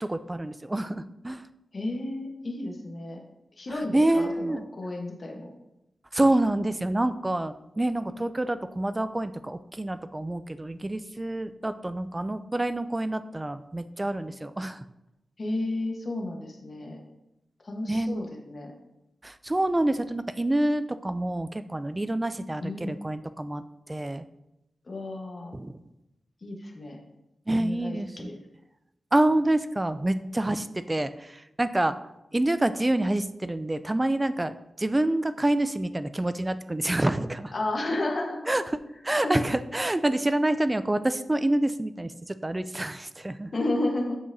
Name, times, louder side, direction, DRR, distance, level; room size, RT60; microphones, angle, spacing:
voice 1, 0.0-1.4 3.7-4.6 6.1-14.8 17.9-18.3 19.2-23.6 23.9-24.2 25.5-25.7 27.5-28.3 29.1-32.0 32.3-37.5 38.5-38.6 39.0-43.5, right 1 dB, 15° right, 12 dB, 0.3 m, -27 dB
voice 2, 1.7-3.2 3.6-5.5 15.4-17.0 17.6-18.7 22.6-23.0 24.8-25.5 26.4-27.0 27.5-28.4 37.5-38.4 39.2-39.4 43.5-44.2, left 2 dB, 45° left, 1 dB, 1.2 m, -32 dB
7.6 x 5.8 x 2.7 m, 0.90 s
wide cardioid pair, 110°, 0 cm